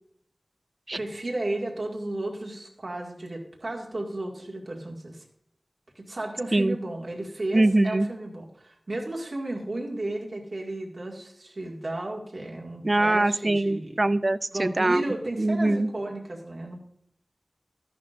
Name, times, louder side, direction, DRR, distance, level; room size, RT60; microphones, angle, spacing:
voice 1, 0.9-5.2 6.0-13.9 14.5-16.8, right 2 dB, 65° right, -2 dB, 2.1 m, -34 dB
voice 2, 7.5-8.1 12.8-15.9, right 2 dB, 45° right, 14 dB, 0.4 m, -23 dB
13.0 x 11.0 x 2.6 m, 0.70 s
wide cardioid pair, 65°, 0 cm